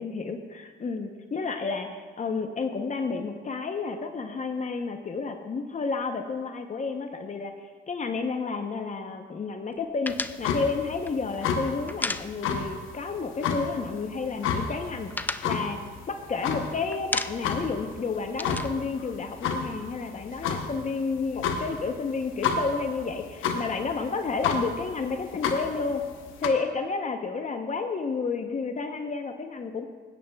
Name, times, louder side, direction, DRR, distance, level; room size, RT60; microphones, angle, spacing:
voice 1, 0.0-7.5 7.9-26.0 26.4-29.9, left 4 dB, 35° left, 5 dB, 0.8 m, -31 dB
sound 1, 10.0-12.8 13.1-13.3 13.6-14.3 14.6-16.6 16.9-17.7 17.9-19.8, left 2 dB, 10° left, 0.3 m, -34 dB
sound 2, 10.1-26.5, left 5 dB, 85° left, 1.0 m, -32 dB
16.5 x 9.5 x 2.3 m, 1.5 s
cardioid pair, 90°, 20 cm